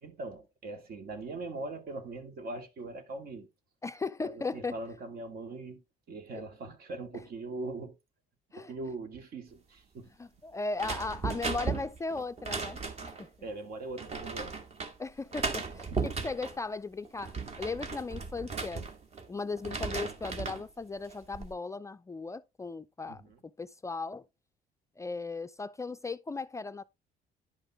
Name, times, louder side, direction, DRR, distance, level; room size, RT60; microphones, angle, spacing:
voice 1, 0.0-3.5 4.2-8.0 8.6-10.1 13.4-14.6 15.9-16.2 23.1-23.4, right 2 dB, 60° right, 2.3 m, -41 dB
voice 2, 3.8-4.8 6.3-6.4 8.5-8.7 10.2-13.3 15.0-18.8 19.3-23.2 23.6-24.3 25.0-26.8, left 3 dB, 15° left, 0.4 m, -37 dB
sound 1, 10.8-13.3 14.0-14.9 15.3-16.6 17.0-19.3 19.6-20.6 21.1-21.5, right 4 dB, 40° right, 1.8 m, -36 dB
11.0 x 5.4 x 3.6 m
cardioid pair, 110°, 17 cm